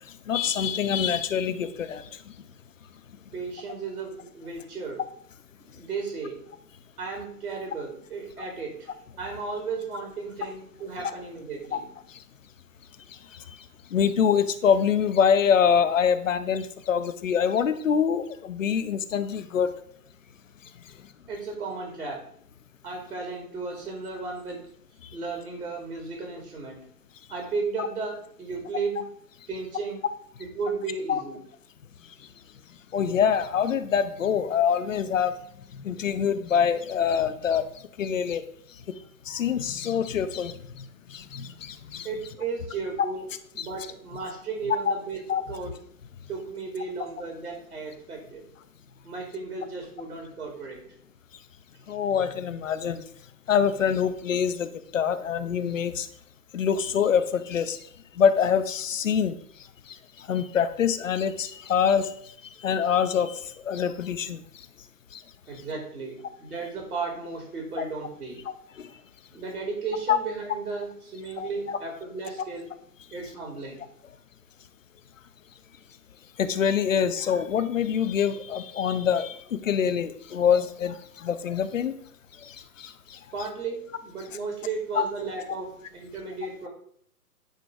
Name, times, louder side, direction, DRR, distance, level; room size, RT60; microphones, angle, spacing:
voice 1, 0.3-2.0 11.7-11.8 13.9-19.7 27.8-27.9 31.1-31.2 32.9-35.3 35.8-37.7 38.0-38.4 39.3-40.8 41.1-42.1 43.6-43.7 44.9-45.0 45.3-45.4 51.9-53.0 53.5-54.7 54.9-56.1 56.5-57.8 58.2-59.3 60.3-62.1 62.6-63.4 63.7-64.4 67.8-67.9 68.8-68.9 70.1-70.2 71.4-71.8 76.4-81.9 82.8-82.9 84.9-85.0, left 7 dB, 55° left, 11 dB, 0.7 m, -25 dB
voice 2, 3.3-5.0 5.6-6.4 7.0-8.9 9.2-11.8 21.3-22.2 22.8-24.6 25.1-26.8 27.3-29.0 29.5-30.0 30.4-31.4 42.0-43.2 43.5-45.7 46.3-48.4 49.0-50.8 65.5-68.4 69.3-72.7 73.1-73.8 83.3-86.7, right 4 dB, 70° right, 1 dB, 2.6 m, -34 dB
9.0 x 3.0 x 4.8 m, 0.64 s
figure-of-eight pair, 130°, 47 cm